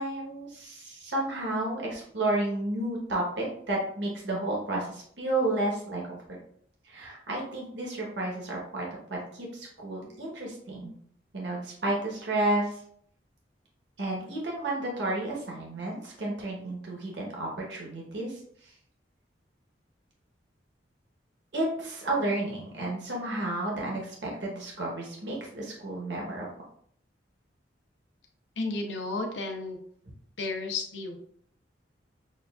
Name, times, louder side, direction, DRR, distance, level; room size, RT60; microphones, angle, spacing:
voice 1, 0.0-6.4 6.8-11.0 11.3-12.8 14.0-18.7 21.5-26.5, right 2 dB, 80° right, -2 dB, 1.1 m, -32 dB
voice 2, 28.6-29.8 30.4-31.2, left 3 dB, 80° left, 3 dB, 0.7 m, -32 dB
6.3 x 2.4 x 2.4 m, 0.63 s
head